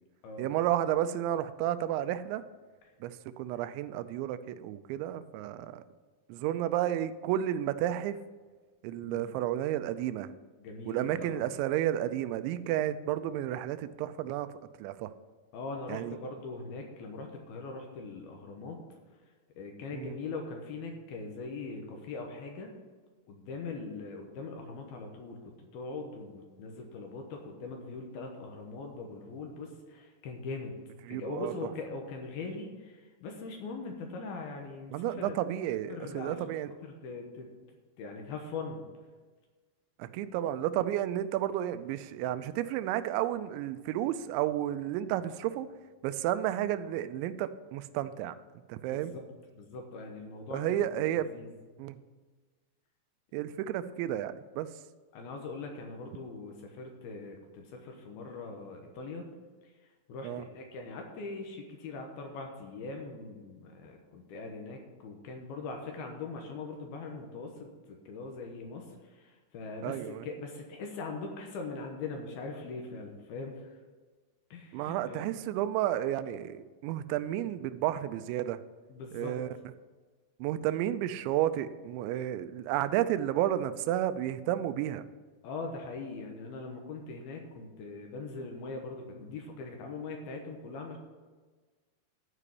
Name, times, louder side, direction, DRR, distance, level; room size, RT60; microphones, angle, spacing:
voice 1, 0.4-2.4 3.0-5.8 6.3-8.2 8.8-10.3 10.9-14.5 14.8-15.1 15.9-16.2 19.9-20.1 31.1-31.5 34.9-36.7 40.0-45.7 46.0-48.3 48.7-49.1 50.5-51.3 51.8-52.0 53.3-54.7 60.2-60.4 69.8-70.2 74.7-78.6 79.1-79.5 80.4-85.1, right 12 dB, 90° right, 12 dB, 2.9 m, -32 dB
voice 2, 10.6-11.5 15.5-18.8 19.6-22.7 23.3-30.7 31.1-35.4 35.9-36.5 36.8-37.5 38.0-38.8 48.9-49.2 49.5-50.8 51.1-51.5 55.1-59.3 60.1-73.7 74.5-75.2 78.9-79.4 85.4-91.0, left 3 dB, 70° left, 2 dB, 2.7 m, -41 dB
12.5 x 4.9 x 8.4 m, 1.4 s
omnidirectional pair, 5.1 m